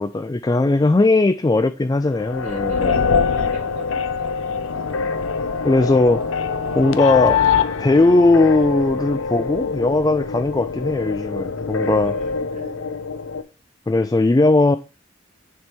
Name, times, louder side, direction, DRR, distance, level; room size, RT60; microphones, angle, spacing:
voice 1, 0.0-3.0 5.6-6.3 6.8-7.4 7.8-12.2 13.9-14.8, left 2 dB, 20° left, 0.3 m, -18 dB
sound 1, 2.1-13.4, left 5 dB, 85° left, 0.6 m, -24 dB
voice 2, 2.4-4.4 4.7-4.9 6.6-6.9 11.8-12.9, right 2 dB, 35° right, 2.2 m, -41 dB
9.6 x 3.7 x 4.4 m
head